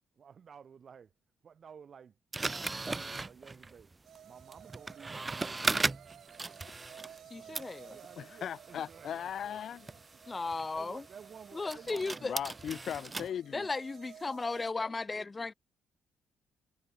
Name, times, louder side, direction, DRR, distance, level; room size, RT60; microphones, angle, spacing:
voice 1, 0.2-1.1 1.4-3.9 4.2-5.9 7.2-9.6 9.9-10.0 10.7-12.2, right 7 dB, 50° right, 6.6 m, -54 dB
sound 1, 2.3-7.3 7.5-13.3, right 3 dB, 20° right, 1.2 m, -38 dB
sound 2, 4.0-14.7, right 10 dB, 70° right, 4.4 m, -55 dB
voice 2, 7.3-8.0 10.3-11.0 11.5-12.4 13.5-15.5, left 3 dB, 25° left, 0.5 m, -36 dB
voice 3, 8.2-9.9 12.2-13.7, left 9 dB, 60° left, 1.0 m, -38 dB
cardioid pair, 90°, 0 cm